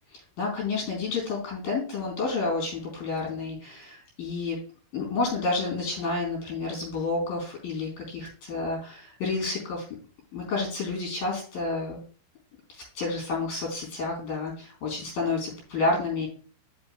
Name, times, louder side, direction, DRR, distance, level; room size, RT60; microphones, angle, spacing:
voice 1, 0.1-4.6 4.9-9.8 10.3-12.0 12.7-16.3, left 3 dB, 50° left, -3 dB, 5.8 m, -30 dB
12.5 x 6.4 x 2.3 m, 0.41 s
omnidirectional pair, 5.1 m